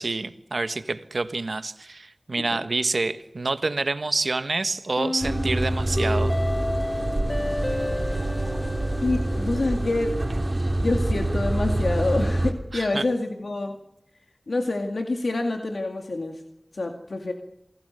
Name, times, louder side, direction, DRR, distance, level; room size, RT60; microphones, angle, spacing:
voice 1, 0.0-6.3 12.7-13.0, right 3 dB, 80° right, 10 dB, 1.4 m, -27 dB
sound 1, 5.0-10.0, left 2 dB, 45° left, 0.8 m, -31 dB
sound 2, 5.2-12.5, right 1 dB, 45° right, 3.2 m, -26 dB
voice 2, 9.0-10.2 10.8-13.8 14.5-16.4 16.7-17.3, left 2 dB, 90° left, 4 dB, 2.1 m, -27 dB
28.0 x 18.5 x 6.8 m, 0.83 s
wide cardioid pair, 50°, 0 cm